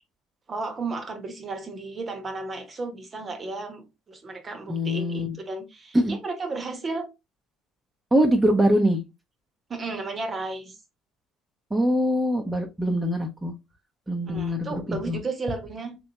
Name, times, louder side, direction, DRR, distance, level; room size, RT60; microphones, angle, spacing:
voice 1, 0.5-7.1 8.6-8.7 9.7-10.8 14.3-16.0, right 3 dB, 40° right, 1.1 m, -34 dB
voice 2, 4.7-5.4 5.9-6.1 8.1-9.0 11.7-13.5 14.1-15.2, equal, 15° right, 0.9 m, -23 dB
3.4 x 3.1 x 2.9 m
hypercardioid pair, 65°, 0 cm